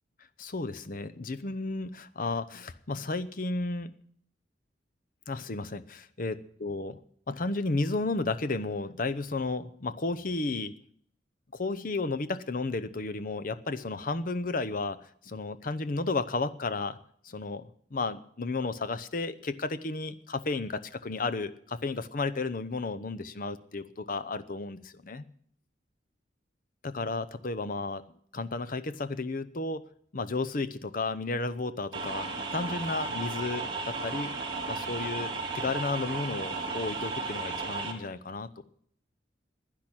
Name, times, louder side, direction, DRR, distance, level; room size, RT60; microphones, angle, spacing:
voice 1, 0.4-3.9 5.3-7.0 7.3-10.8 11.5-15.0 15.2-17.0 17.2-25.2 26.8-28.0 28.3-29.8 30.1-34.3 34.7-38.7, left 3 dB, 50° left, 12 dB, 0.7 m, -33 dB
sound 1, 31.9-37.9, right 3 dB, 25° right, 4.0 m, -34 dB
10.5 x 10.5 x 8.8 m, 0.64 s
head